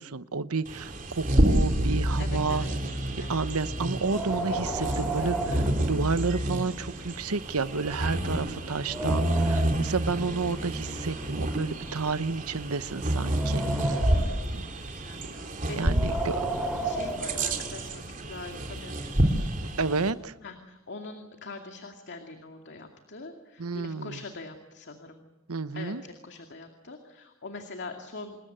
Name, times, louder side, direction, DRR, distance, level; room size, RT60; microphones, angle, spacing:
voice 1, 0.0-2.7 3.2-14.1 14.5-14.7 15.8-16.4 19.8-20.3 23.6-24.2 25.5-26.0, right 4 dB, 80° right, 14 dB, 1.0 m, -31 dB
Bird vocalization bird call bird song, 0.6-20.1, right 1 dB, 40° right, 3.1 m, -29 dB
voice 2, 2.2-2.7 3.2-3.4 14.2-16.2 16.8-19.5 20.4-25.2 25.7-28.4, left 3 dB, 55° left, 5 dB, 2.3 m, -43 dB
Wind, 3.9-6.6 6.9-7.0 7.7-7.8 8.3-9.9 10.7-12.3 12.8-14.5 15.7-17.8, right 2 dB, 5° right, 3.7 m, -34 dB
27.0 x 21.0 x 9.0 m, 1.0 s
head